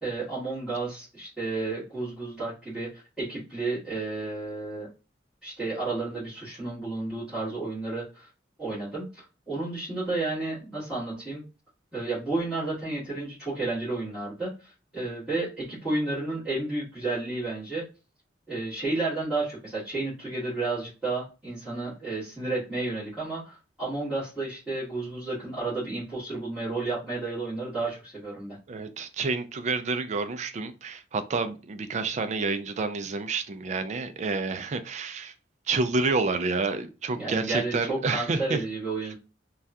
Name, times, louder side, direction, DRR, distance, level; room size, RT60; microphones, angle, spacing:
voice 1, 0.0-4.9 5.4-8.3 8.6-11.4 11.9-17.9 18.5-28.6 37.1-39.1, right 3 dB, 5° right, 1.7 m, -32 dB
voice 2, 28.7-35.3 35.7-38.6, right 3 dB, 40° right, 0.4 m, -29 dB
3.4 x 2.3 x 2.6 m
head